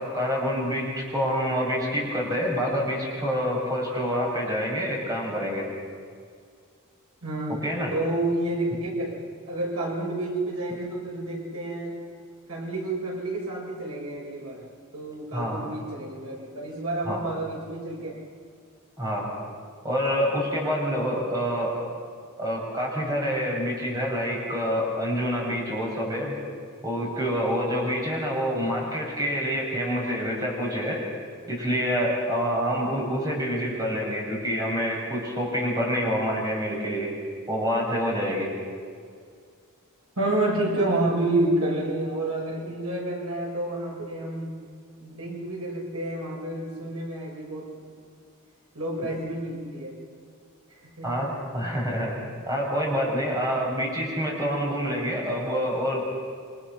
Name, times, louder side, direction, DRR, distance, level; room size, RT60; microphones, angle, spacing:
voice 1, 0.0-5.7 7.6-7.9 15.3-15.6 17.0-17.2 19.0-19.3 19.8-21.8 22.4-26.4 26.8-31.0 31.5-37.1 37.5-38.5 51.0-51.3 51.5-52.1 52.5-56.0, equal, 15° right, -3 dB, 6.6 m, -27 dB
voice 2, 7.2-7.6 7.9-9.2 9.5-12.0 12.5-14.6 14.9-18.2 40.2-44.5 45.0-47.7 48.7-49.9 51.0-51.3, right 2 dB, 70° right, -2 dB, 7.2 m, -29 dB
28.5 x 26.0 x 6.2 m, 2.2 s
head